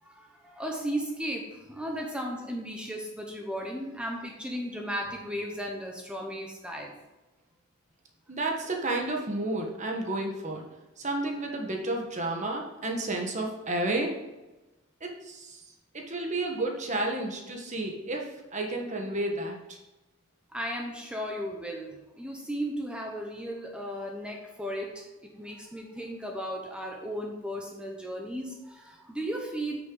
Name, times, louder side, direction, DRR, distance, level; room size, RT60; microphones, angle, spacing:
voice 1, 0.0-6.9 20.5-29.8, equal, 5° right, 1 dB, 1.0 m, -35 dB
voice 2, 8.3-10.6 11.0-14.1 15.0-15.6 15.9-19.8, right 2 dB, 35° right, 1 dB, 1.4 m, -31 dB
9.6 x 6.2 x 4.0 m, 1.1 s
head